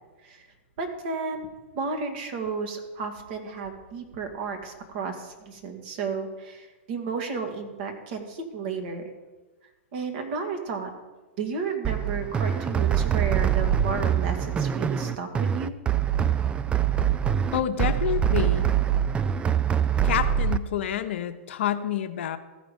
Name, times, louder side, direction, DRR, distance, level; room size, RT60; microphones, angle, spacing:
voice 1, 0.8-9.1 9.9-10.9 11.4-15.7, right 5 dB, 50° right, 5 dB, 1.8 m, -33 dB
sound 1, 11.8-20.6, right 9 dB, 15° right, 0.3 m, -24 dB
voice 2, 17.5-18.7 20.0-22.4, left 10 dB, 65° left, 9 dB, 0.7 m, -28 dB
15.0 x 5.1 x 5.2 m, 1.2 s
hypercardioid pair, 115°, 7 cm